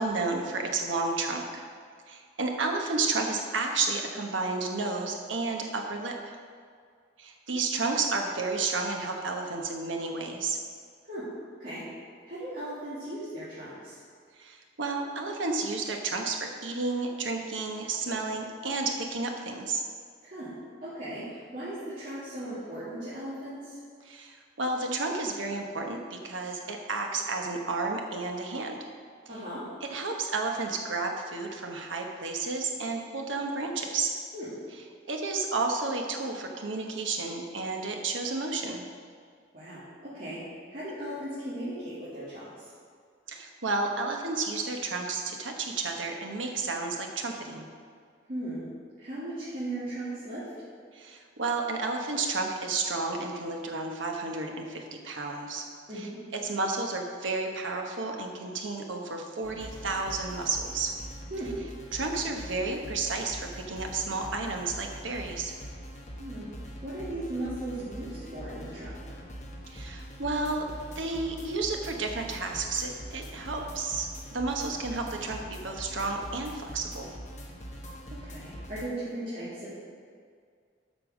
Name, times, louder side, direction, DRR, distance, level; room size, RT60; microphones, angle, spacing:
voice 1, 0.0-1.7 2.1-6.2 7.2-10.6 14.4-19.8 24.1-28.9 29.9-34.1 35.1-38.9 43.3-47.7 50.9-55.6 55.9-56.1 56.4-60.9 61.9-65.5 69.7-77.1, right 3 dB, 80° right, 2 dB, 1.2 m, -31 dB
voice 2, 11.0-11.9 12.3-14.0 20.2-23.8 29.3-29.7 34.3-34.5 39.5-42.6 48.3-48.7 49.0-50.5 55.9-56.2 61.3-61.6 66.2-66.5 66.8-69.0 78.2-79.8, right 1 dB, 45° right, -12 dB, 2.3 m, -37 dB
sound 1, 59.4-78.9, equal, 35° left, 1.2 m, -43 dB
8.3 x 5.5 x 6.4 m, 2.1 s
head